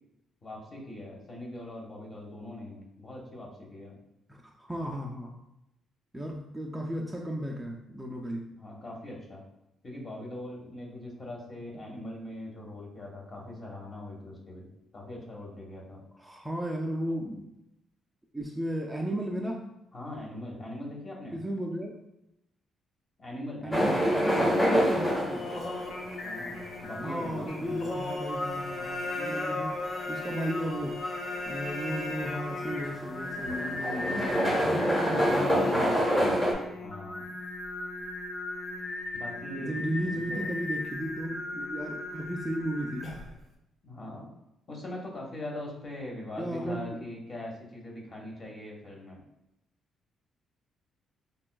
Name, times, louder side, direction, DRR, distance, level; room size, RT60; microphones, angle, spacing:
voice 1, 0.4-4.0 8.5-9.4 9.8-16.0 19.9-21.4 23.2-24.4 26.2-27.8 36.8-37.3 39.1-39.8 40.1-40.5 43.8-44.3 44.7-49.2, left 1 dB, 35° left, -2 dB, 1.1 m, -41 dB
voice 2, 4.3-5.3 6.1-8.5 11.9-12.1 16.1-17.5 18.3-19.7 21.3-22.0 23.6-25.5 27.0-29.8 30.1-31.0 31.5-36.1 39.6-43.1 46.4-47.0, right 1 dB, 10° right, -1 dB, 0.4 m, -35 dB
sound 1, 23.7-36.5, equal, 10° left, 0.9 m, -28 dB
Singing, 23.8-43.4, left 2 dB, 55° left, 0.6 m, -36 dB
5.2 x 2.3 x 2.2 m, 0.86 s
cardioid pair, 90°, 0 cm